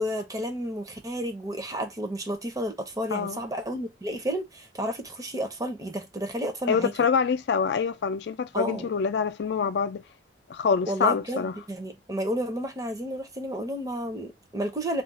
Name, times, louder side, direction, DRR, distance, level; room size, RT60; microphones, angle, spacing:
voice 1, 0.0-6.9 8.5-8.9 10.9-15.0, equal, 20° right, 0.5 m, -31 dB
voice 2, 6.7-10.0 10.5-11.5, left 6 dB, 65° left, 0.3 m, -25 dB
2.4 x 2.1 x 3.9 m
head